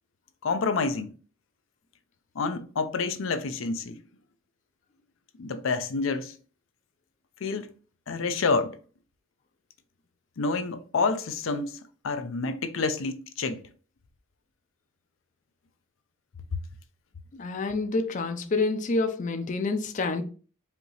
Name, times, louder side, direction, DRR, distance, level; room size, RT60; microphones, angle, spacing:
voice 1, 0.4-1.1 2.3-4.0 5.4-6.4 7.4-7.7 8.1-8.8 10.4-13.6 16.5-16.6, left 4 dB, 85° left, 0.5 m, -28 dB
voice 2, 17.4-20.2, left 3 dB, 40° left, 0.5 m, -28 dB
5.1 x 2.8 x 3.1 m
head